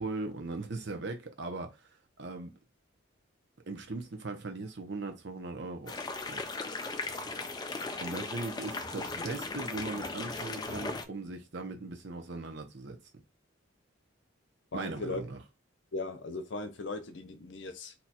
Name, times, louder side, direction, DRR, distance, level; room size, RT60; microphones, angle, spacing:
voice 1, 0.0-1.9 2.2-2.5 3.7-5.9 6.3-6.4 8.0-13.0 14.7-15.4, right 3 dB, 55° right, 0.8 m, -39 dB
sound 1, 5.9-11.0, left 3 dB, 20° left, 0.3 m, -37 dB
voice 2, 14.7-15.2 15.9-17.9, left 2 dB, 60° left, 0.7 m, -38 dB
2.8 x 2.4 x 4.2 m
head